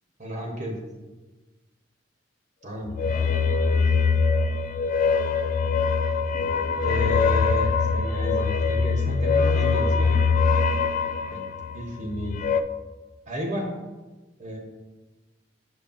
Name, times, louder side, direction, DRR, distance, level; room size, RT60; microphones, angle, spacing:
voice 1, 0.2-0.8 2.6-3.1 6.8-10.3 11.3-11.4 11.7-12.4 13.3-13.7 14.4-14.6, equal, 45° right, 0 dB, 1.0 m, -32 dB
sound 1, 2.9-12.6, left 5 dB, 45° left, 0.3 m, -23 dB
7.0 x 6.3 x 2.5 m, 1.2 s
head